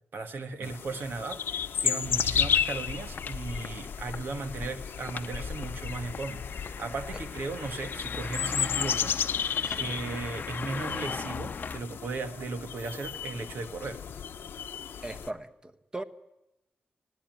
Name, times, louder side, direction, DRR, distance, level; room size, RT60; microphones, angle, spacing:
voice 1, 0.1-14.0, right 3 dB, 75° right, 7 dB, 1.7 m, -37 dB
sound 1, 0.6-15.3, left 8 dB, 85° left, 0.9 m, -33 dB
sound 2, 2.0-11.8, left 5 dB, 50° left, 0.7 m, -39 dB
voice 2, 9.6-9.9 15.0-16.0, right 2 dB, 20° right, 10 dB, 1.3 m, -39 dB
sound 3, 9.8-9.9 12.8-13.4, right 1 dB, 40° right, 2.6 m, -53 dB
20.0 x 15.5 x 9.3 m, 0.92 s
cardioid pair, 80°, 4 cm